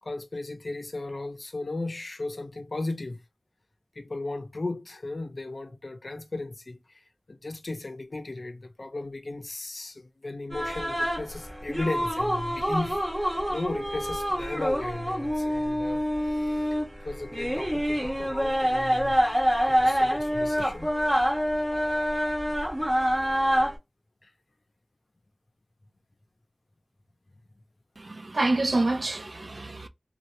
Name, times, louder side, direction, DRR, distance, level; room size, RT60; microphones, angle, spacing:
voice 1, 0.0-3.2 4.0-6.8 7.3-16.7 17.0-19.4 19.6-20.9 24.2-24.3, left 2 dB, 60° left, 0.6 m, -36 dB
sound 1, 10.5-23.8, equal, 15° right, 1.4 m, -26 dB
voice 2, 28.0-29.9, right 2 dB, 55° right, 0.4 m, -27 dB
2.7 x 2.3 x 3.1 m
wide cardioid pair, 50°, 0 cm